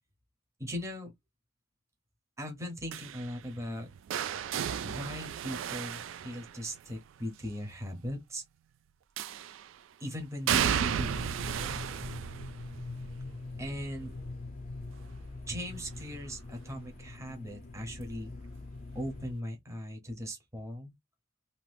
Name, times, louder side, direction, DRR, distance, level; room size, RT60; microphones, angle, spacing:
voice 1, 0.6-1.1 2.4-3.9 4.8-8.4 10.0-11.2 11.6-11.8 13.6-14.2 15.5-18.3 18.9-20.9, equal, 15° right, 0.8 m, -39 dB
sound 1, 2.9-7.0 9.2-9.8 10.5-16.3 16.6-17.0 18.3-18.4, right 9 dB, 80° right, 0.3 m, -35 dB
sound 2, 10.5-19.3, left 3 dB, 40° left, 0.5 m, -43 dB
2.7 x 2.4 x 3.3 m
head